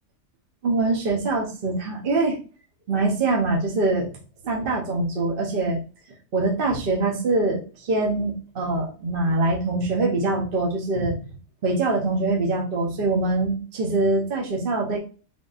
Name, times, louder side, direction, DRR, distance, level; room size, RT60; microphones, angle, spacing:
voice 1, 0.6-2.4 2.9-4.1 4.4-5.8 6.3-11.1 11.6-15.0, right 2 dB, 45° right, -2 dB, 0.8 m, -23 dB
3.7 x 3.6 x 2.4 m, 0.37 s
omnidirectional pair, 1.5 m